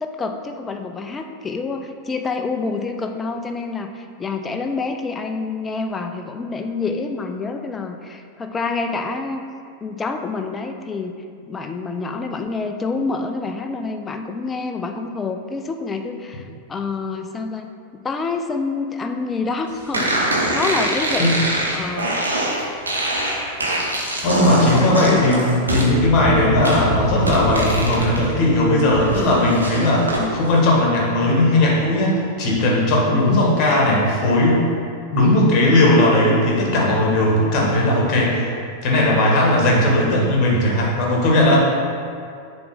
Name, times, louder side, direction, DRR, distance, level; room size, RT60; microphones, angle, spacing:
voice 1, 0.0-9.4 9.8-11.1 11.5-21.4 21.7-22.2 24.7-25.4 30.2-30.3 33.1-33.5 35.4-35.5, left 4 dB, 20° left, 5 dB, 0.4 m, -27 dB
sound 1, 19.9-28.2 28.6-30.2, right 1 dB, 75° right, 1.0 m, -23 dB
voice 2, 24.2-34.6 35.1-38.4 38.8-41.7, left 1 dB, 35° left, -3 dB, 1.5 m, -17 dB
6.9 x 3.0 x 5.0 m, 2.2 s
figure-of-eight pair, 90°, 0 cm